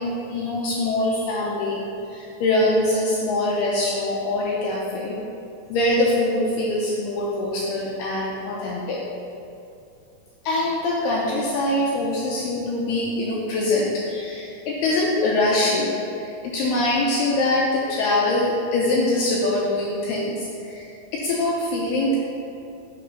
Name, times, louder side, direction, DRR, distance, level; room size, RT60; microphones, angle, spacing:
voice 1, 0.0-1.8 2.1-5.2 5.7-9.0 10.4-22.2, left 2 dB, 80° left, -4 dB, 2.3 m, -23 dB
8.5 x 3.4 x 5.4 m, 2.7 s
omnidirectional pair, 5.3 m